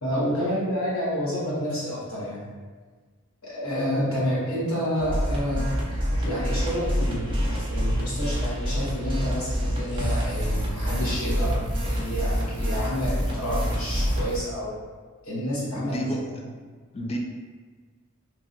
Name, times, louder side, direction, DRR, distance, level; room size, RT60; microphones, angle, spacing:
voice 1, 0.0-2.4 3.4-5.7 6.2-14.7 15.2-16.1, equal, 80° left, -9 dB, 1.3 m, -29 dB
sound 1, 5.0-14.4, equal, 25° right, 0.5 m, -27 dB
voice 2, 15.7-16.7 16.9-17.2, equal, 30° left, 0 dB, 0.3 m, -32 dB
3.0 x 2.6 x 2.5 m, 1.5 s
head